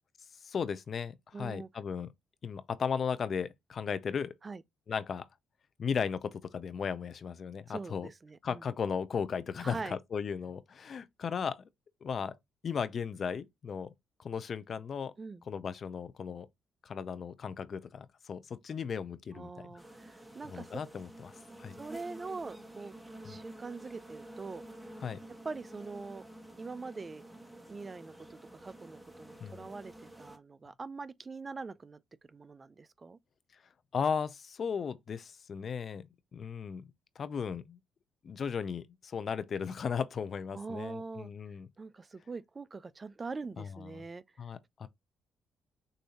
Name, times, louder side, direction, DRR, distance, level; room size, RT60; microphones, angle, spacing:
voice 1, 0.4-2.1 2.4-4.3 4.9-5.3 5.8-8.1 8.4-11.6 12.0-12.3 12.6-13.9 14.2-15.1 15.5-16.5 16.8-19.8 20.5-21.3 21.6-21.8 23.2-23.4 25.0-25.2 29.4-29.7 33.9-36.8 37.2-37.8 38.2-41.7 43.6-44.0 44.4-44.9, left 6 dB, 50° left, 0.5 m, -36 dB
voice 2, 1.3-1.7 4.4-4.6 7.7-8.6 9.6-10.0 15.2-15.4 19.3-20.8 21.8-22.9 23.2-24.6 25.4-26.2 26.5-27.2 27.7-29.9 30.2-32.0 32.3-33.2 40.5-41.3 41.8-44.2, right 4 dB, 30° right, 0.4 m, -43 dB
sound 1, 19.8-30.4, right 1 dB, 5° right, 1.4 m, -50 dB
6.5 x 2.7 x 2.9 m
cardioid pair, 80°, 0 cm